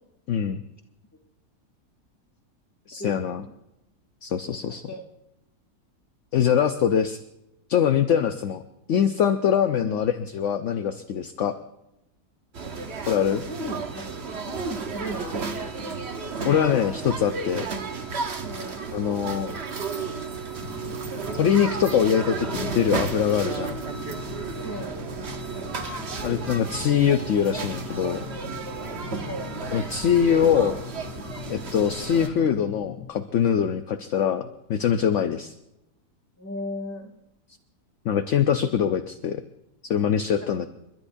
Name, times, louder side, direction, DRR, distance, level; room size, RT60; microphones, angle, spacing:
voice 1, 0.3-0.6 2.9-3.4 4.2-4.8 6.3-7.2 7.7-8.6 8.9-11.6 13.1-13.4 16.4-17.7 18.9-19.5 21.3-23.7 26.2-28.2 29.7-30.7 31.5-35.5 38.0-39.4 39.9-40.7, left 8 dB, 60° left, 8 dB, 0.9 m, -23 dB
voice 2, 3.0-3.5 4.5-4.6 4.9-5.0 8.2-8.3 9.7-10.0 13.4-14.0 14.3-15.5 18.4-18.9 24.6-25.0 29.2-29.5 36.4-37.1 40.4-40.7, equal, 10° left, 0 dB, 2.4 m, -36 dB
sound 1, 12.5-32.3, right 5 dB, 45° right, 1.2 m, -33 dB
sound 2, 20.6-33.1, left 8 dB, 85° left, 1.6 m, -41 dB
30.0 x 12.5 x 2.6 m, 0.88 s
omnidirectional pair, 1.7 m